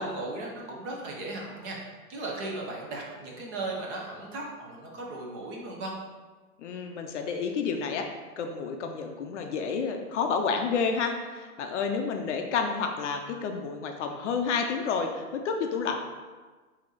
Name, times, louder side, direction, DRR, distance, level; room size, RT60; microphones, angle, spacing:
voice 1, 0.0-1.8 2.1-6.0, right 2 dB, 30° right, -2 dB, 0.9 m, -36 dB
voice 2, 6.6-8.1 8.4-16.0, left 5 dB, 50° left, 4 dB, 0.5 m, -30 dB
4.4 x 2.8 x 4.0 m, 1.4 s
hypercardioid pair, 130°, 45 cm